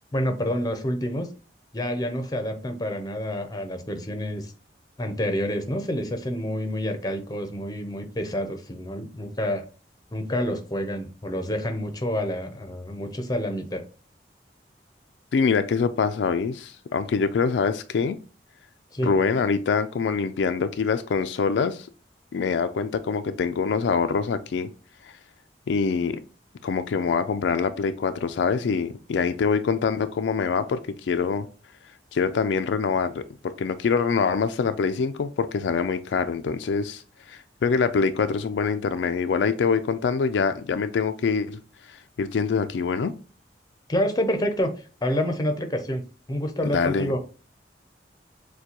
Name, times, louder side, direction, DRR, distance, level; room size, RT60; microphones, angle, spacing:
voice 1, 0.1-1.3 1.7-4.5 5.0-9.6 10.1-13.8 18.9-19.1 43.9-44.7 45.0-46.0 46.3-47.2, equal, 20° left, 0.6 m, -28 dB
voice 2, 15.3-18.2 19.0-21.9 22.3-24.7 25.0-25.1 25.7-26.2 26.6-31.5 32.1-37.0 37.3-41.6 41.9-43.1 46.7-47.1, left 5 dB, 85° left, 0.4 m, -24 dB
6.6 x 2.2 x 2.9 m
head